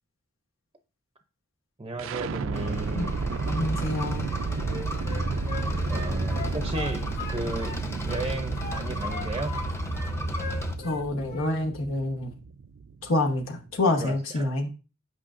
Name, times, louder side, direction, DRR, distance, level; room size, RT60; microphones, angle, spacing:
voice 1, 1.8-3.2 5.9-9.6 13.8-14.5, right 2 dB, 25° right, 7 dB, 0.5 m, -35 dB
sound 1, 2.0-13.9, right 5 dB, 75° right, 0.4 m, -33 dB
sound 2, 2.5-10.7, equal, 15° left, 0.7 m, -33 dB
voice 2, 3.5-4.3 10.8-12.4 13.0-14.7, left 2 dB, 85° left, 2 dB, 1.0 m, -27 dB
Wind instrument woodwind instrument, 4.6-7.8 8.1-9.7 9.9-11.0 11.3-11.6, left 5 dB, 50° left, 2.2 m, -38 dB
8.6 x 5.3 x 2.5 m, 0.33 s
head